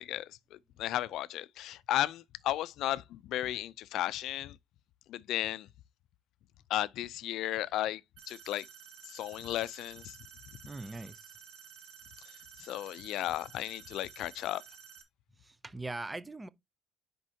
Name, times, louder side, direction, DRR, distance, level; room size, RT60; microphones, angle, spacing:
voice 1, 0.0-4.6 5.1-5.7 6.7-8.0 8.3-8.7 9.1-10.2 12.6-14.6, left 13 dB, 70° left, 0.5 m, -34 dB
sound 1, 8.2-15.0, right 7 dB, 90° right, 2.4 m, -53 dB
voice 2, 10.6-11.3 15.3-16.5, right 2 dB, 15° right, 0.6 m, -41 dB
9.7 x 5.3 x 2.8 m
cardioid pair, 125°, 0 cm